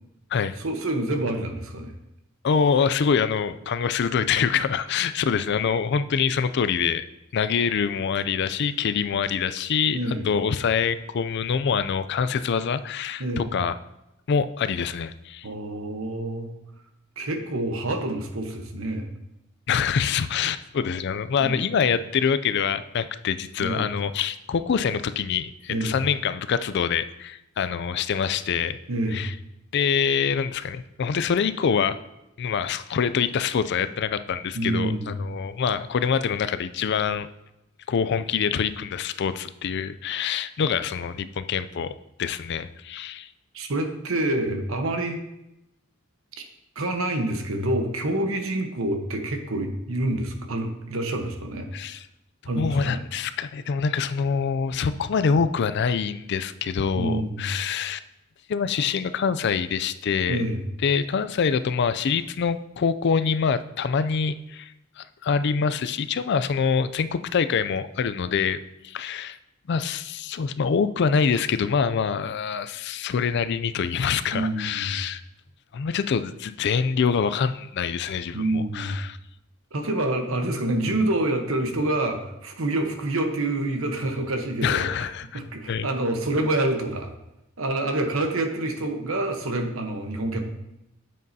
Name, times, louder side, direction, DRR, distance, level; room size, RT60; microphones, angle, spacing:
voice 1, 0.6-1.9 9.9-10.3 13.2-13.5 15.4-16.5 17.2-19.1 21.4-21.7 23.6-23.9 25.7-25.9 28.9-29.2 34.5-35.2 43.5-45.2 46.4-46.5 46.7-51.7 52.5-53.0 56.9-57.5 60.3-60.6 74.3-75.0 78.3-79.0 79.7-85.1 85.3-87.1 87.6-90.5, right 1 dB, 80° right, 5 dB, 1.1 m, -27 dB
voice 2, 2.4-7.0 7.3-13.7 14.3-15.5 19.7-28.8 29.1-29.3 29.7-32.0 32.4-37.3 37.9-41.9 42.2-43.3 51.7-52.1 52.5-58.0 58.5-60.5 60.8-68.6 68.8-69.4 69.7-75.2 75.7-79.2 84.6-85.4 85.7-85.9, left 6 dB, 55° left, 13 dB, 0.4 m, -25 dB
9.3 x 7.4 x 2.8 m, 0.90 s
head